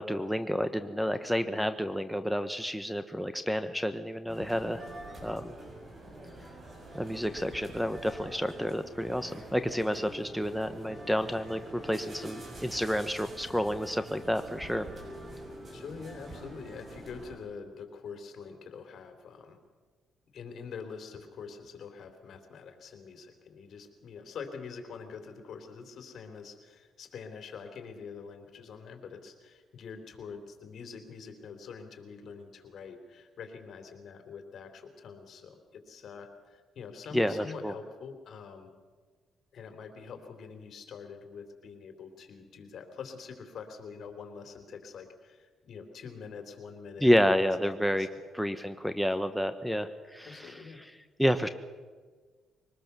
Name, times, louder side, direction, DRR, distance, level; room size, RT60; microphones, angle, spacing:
voice 1, 0.0-4.8 5.2-5.5 6.9-14.8 37.1-37.7 47.0-48.1 48.3-50.6 51.2-51.5, equal, ahead, 8 dB, 1.1 m, -29 dB
sound 1, 4.3-17.4, right 1 dB, 35° right, 7.0 m, -46 dB
voice 2, 15.7-19.6 20.3-38.7 39.5-47.1 47.4-48.1 50.2-50.8, left 5 dB, 65° left, 6 dB, 3.5 m, -45 dB
23.0 x 19.5 x 6.9 m, 1.5 s
cardioid pair, 90°, 0 cm